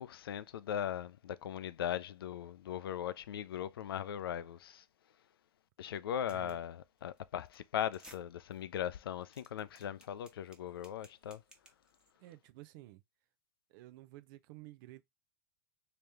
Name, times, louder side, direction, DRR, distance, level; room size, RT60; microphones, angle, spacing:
voice 1, 0.0-4.8 5.8-11.4, left 10 dB, 85° left, 0.4 m, -39 dB
sound 1, 6.3-6.6 7.0-7.2 7.5-7.6 7.9-8.2 8.5-8.6 9.0-12.1, right 1 dB, 5° right, 1.1 m, -59 dB
voice 2, 6.3-6.6 12.2-13.0 13.7-15.0, right 16 dB, 60° right, 0.5 m, -52 dB
3.2 x 2.9 x 3.4 m
hypercardioid pair, 90°, 12 cm